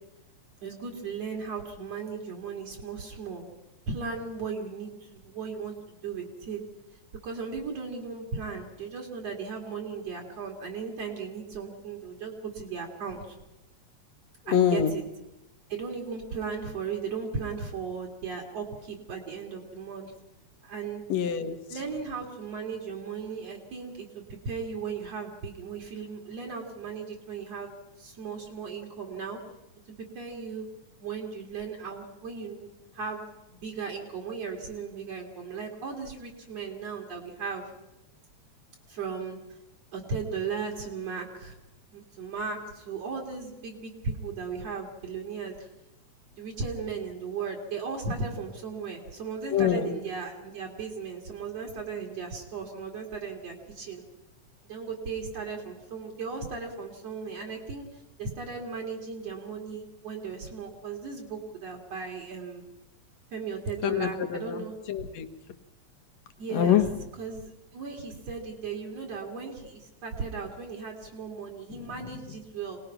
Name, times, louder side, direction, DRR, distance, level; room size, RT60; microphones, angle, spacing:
voice 1, 0.6-3.5 3.9-6.6 7.2-13.4 14.5-15.0 15.7-20.1 20.6-21.0 21.7-29.4 30.2-30.7 31.0-32.7 32.9-37.7 38.9-39.4 39.9-41.6 41.9-45.7 46.4-54.0 54.7-62.6 63.3-64.7 66.4-66.8 67.2-72.8, right 5 dB, 60° right, 1 dB, 3.5 m, -36 dB
voice 2, 14.5-14.9 21.1-21.6 49.5-50.0 63.8-65.3 66.5-66.8 71.8-71.9, left 9 dB, 70° left, 8 dB, 2.4 m, -25 dB
26.5 x 19.0 x 6.0 m, 0.97 s
omnidirectional pair, 3.3 m